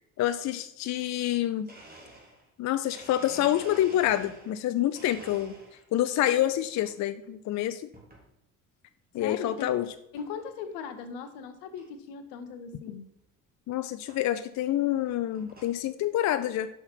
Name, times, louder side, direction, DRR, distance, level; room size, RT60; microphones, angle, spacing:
voice 1, 0.2-1.7 2.6-5.5 5.9-7.8 9.1-9.9 13.7-16.7, left 12 dB, 45° left, 11 dB, 0.5 m, -27 dB
Domestic sounds home sounds, 1.3-1.4 1.7-4.6 4.9-6.0 6.4-6.9 7.9-8.3 8.8-8.9 9.8-9.9 10.2-10.5 10.9-11.0 11.2-11.3 11.8-11.9 13.2-13.3 14.1-14.2 14.9-15.8, right 1 dB, 20° right, 2.3 m, -49 dB
voice 2, 9.2-9.7 10.1-13.1, left 6 dB, 70° left, 9 dB, 1.0 m, -39 dB
5.8 x 5.7 x 4.3 m, 0.79 s
hypercardioid pair, 60°, 41 cm